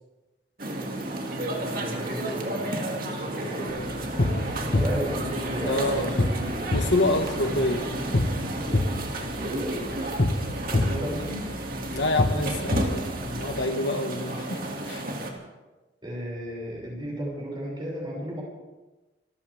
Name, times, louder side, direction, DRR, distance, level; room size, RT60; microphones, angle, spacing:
sound 1, 0.6-15.3, right 1 dB, 50° right, 2.2 m, -32 dB
voice 1, 1.6-3.8 4.1-6.7 9.3-10.3 10.7-11.5 16.0-18.4, equal, 25° right, -3 dB, 6.0 m, -35 dB
voice 2, 3.6-3.9 5.6-6.1 6.7-7.8 11.9-14.6 14.9-15.0, left 2 dB, 80° left, 6 dB, 1.5 m, -27 dB
sound 2, 3.7-13.6, left 1 dB, 55° left, 1.1 m, -28 dB
26.0 x 14.0 x 3.5 m, 1.1 s
head